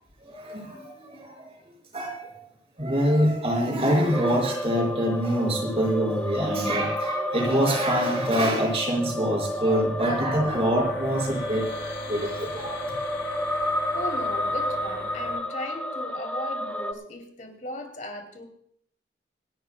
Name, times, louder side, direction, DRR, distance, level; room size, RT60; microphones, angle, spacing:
voice 1, 0.2-1.5 1.9-2.4 2.8-13.0, equal, 35° right, 1 dB, 5.4 m, -25 dB
sound 1, 4.1-16.9, equal, 5° left, 1.0 m, -31 dB
sound 2, 9.7-15.4, left 2 dB, 80° left, 7.2 m, -40 dB
voice 2, 13.9-18.5, left 1 dB, 45° left, 4 dB, 2.7 m, -37 dB
27.0 x 12.5 x 2.2 m, 0.69 s
head